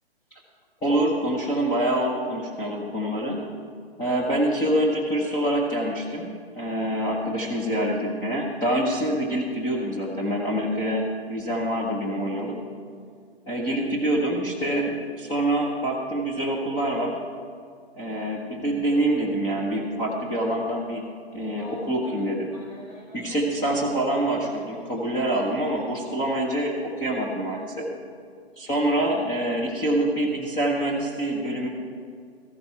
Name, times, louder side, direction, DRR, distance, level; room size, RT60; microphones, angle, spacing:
voice 1, 0.8-3.4 4.0-11.0 11.3-12.6 13.5-17.2 18.0-21.0 21.3-22.5 23.1-27.9 28.6-31.7, right 1 dB, 10° left, -3 dB, 0.9 m, -26 dB
Telephone, 21.5-23.4 24.2-26.1 27.5-27.6 29.2-29.4, left 2 dB, 40° left, 3.0 m, -48 dB
14.5 x 12.0 x 4.5 m, 2.2 s
figure-of-eight pair, 130°, 32 cm